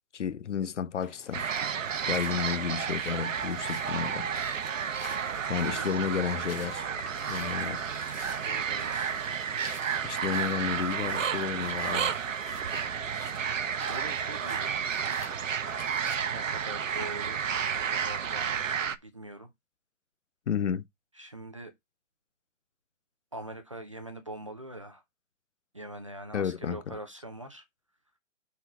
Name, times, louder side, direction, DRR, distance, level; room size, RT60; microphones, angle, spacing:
voice 1, 0.1-1.5 2.1-4.3 5.5-6.9 7.3-7.8 10.0-12.1 20.5-20.8 26.3-27.0, left 8 dB, 60° left, 0.7 m, -32 dB
sound 1, 1.0-16.2, left 4 dB, 45° left, 2.4 m, -49 dB
sound 2, 1.3-19.0, right 7 dB, 70° right, 1.0 m, -31 dB
voice 2, 2.1-2.4 5.6-5.9 8.4-9.1 13.7-14.7 16.3-17.4 17.7-19.5 21.2-21.7 23.3-25.0 25.7-27.6, right 2 dB, 25° right, 0.6 m, -43 dB
6.1 x 4.1 x 5.9 m
hypercardioid pair, 180°, 40 cm